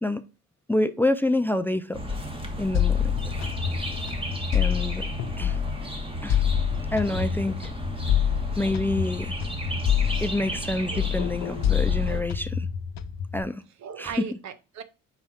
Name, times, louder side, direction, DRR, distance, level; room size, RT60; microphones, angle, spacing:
voice 1, 0.7-2.0 2.6-3.1 4.5-5.1 5.4-5.6 6.2-6.5 6.9-7.7 8.6-9.4 10.2-12.7 13.3-13.6 14.0-14.1, left 2 dB, 5° left, 0.4 m, -27 dB
sound 1, 1.9-12.2, equal, 20° right, 1.5 m, -34 dB
sound 2, 2.7-5.8 6.3-10.7 11.0-13.4, left 8 dB, 65° left, 0.6 m, -27 dB
voice 2, 13.8-14.8, right 7 dB, 65° right, 0.8 m, -38 dB
4.9 x 4.3 x 5.6 m
cardioid pair, 90°, 30 cm